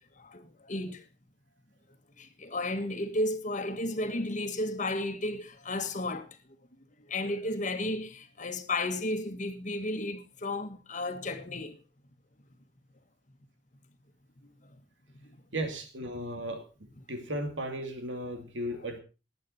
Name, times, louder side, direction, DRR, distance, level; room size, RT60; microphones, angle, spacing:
voice 1, 0.2-1.0 2.2-6.3 7.1-11.8, left 1 dB, 45° left, 1.6 m, -33 dB
voice 2, 15.5-16.6 17.1-19.0, right 1 dB, 90° right, 2.6 m, -35 dB
20.0 x 8.7 x 4.3 m
head